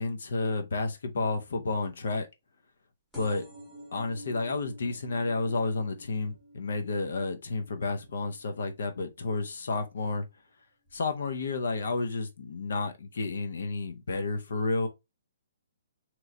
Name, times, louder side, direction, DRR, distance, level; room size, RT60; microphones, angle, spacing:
voice 1, 0.0-2.3 3.2-3.4 3.9-10.2 10.9-14.9, left 3 dB, 75° left, 0.7 m, -31 dB
sound 1, 3.1-10.4 10.9-11.3 12.2-12.3 12.5-12.6 12.8-12.9, equal, 5° left, 0.9 m, -51 dB
3.0 x 2.1 x 3.7 m
hypercardioid pair, 165°, 0 cm